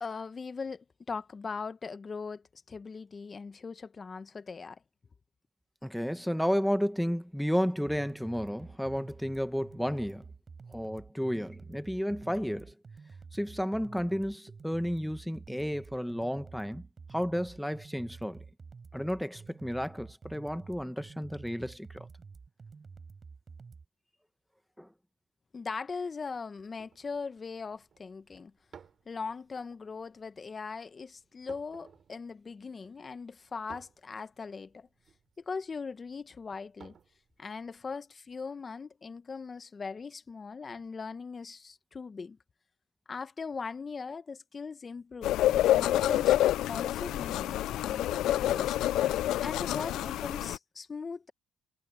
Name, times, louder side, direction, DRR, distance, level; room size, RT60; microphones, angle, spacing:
voice 1, 0.0-4.8 25.5-28.5 29.1-34.9 35.5-37.0 37.4-42.4 43.1-46.4 46.7-48.8 49.4-51.3, left 5 dB, 35° left, 1.1 m, -40 dB
voice 2, 5.8-10.2 10.7-12.7 13.3-16.9 17.1-18.4 18.9-22.1 24.8-24.9, equal, ahead, 1.1 m, -32 dB
sound 1, 7.8-23.8, right 5 dB, 35° right, 4.8 m, -50 dB
sound 2, 26.6-38.0, right 7 dB, 50° right, 3.8 m, -59 dB
sound 3, 45.2-50.6, left 13 dB, 75° left, 0.4 m, -27 dB
cardioid pair, 85°, 0 cm